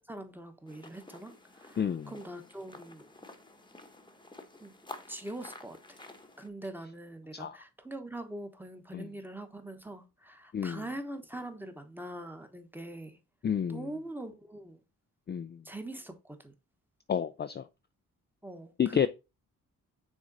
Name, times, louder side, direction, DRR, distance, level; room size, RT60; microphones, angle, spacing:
voice 1, 0.1-3.1 4.6-4.7 5.1-6.0 6.4-13.2 13.7-14.8 15.6-16.5 18.4-19.1, right 1 dB, 5° right, 1.1 m, -43 dB
sound 1, 0.7-6.5, left 2 dB, 15° left, 1.0 m, -51 dB
voice 2, 1.8-2.1 7.3-7.6 8.9-9.1 10.5-10.8 13.4-13.9 15.3-15.6 17.1-17.6 18.8-19.1, left 8 dB, 30° left, 0.4 m, -30 dB
6.4 x 3.7 x 3.9 m
cardioid pair, 85°, 34 cm